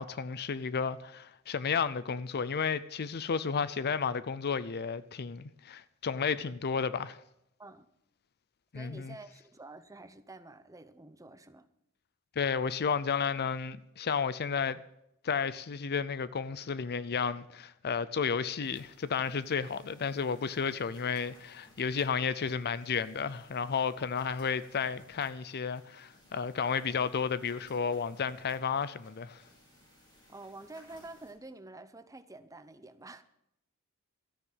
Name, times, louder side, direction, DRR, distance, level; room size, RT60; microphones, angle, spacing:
voice 1, 0.0-7.2 8.7-9.2 12.4-14.8 15.2-29.4, left 6 dB, 50° left, 0.5 m, -32 dB
voice 2, 8.7-11.7 30.3-33.2, right 2 dB, 15° right, 0.8 m, -49 dB
sound 1, 18.6-31.3, equal, 20° left, 5.9 m, -61 dB
13.5 x 9.8 x 7.4 m
head